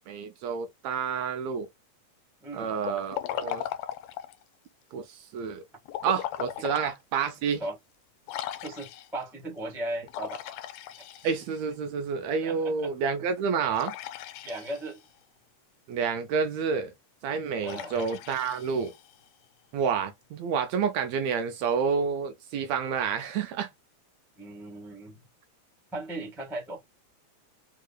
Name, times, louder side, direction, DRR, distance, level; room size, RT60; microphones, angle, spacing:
voice 1, 0.0-1.7 2.5-3.6 4.9-5.6 6.0-7.6 11.2-13.9 15.9-16.9 17.2-18.9 19.7-23.7, right 6 dB, 75° right, 1.7 m, -29 dB
Liquid, 2.8-4.4 5.9-6.9 7.4-7.5 8.3-9.2 10.1-11.7 13.7-15.1 17.6-19.3, left 12 dB, 75° left, 1.7 m, -37 dB
voice 2, 8.6-10.4 12.4-12.9 14.4-15.0 17.6-17.9 24.4-25.2 25.9-26.8, right 1 dB, ahead, 0.5 m, -37 dB
4.8 x 2.7 x 2.2 m
omnidirectional pair, 3.4 m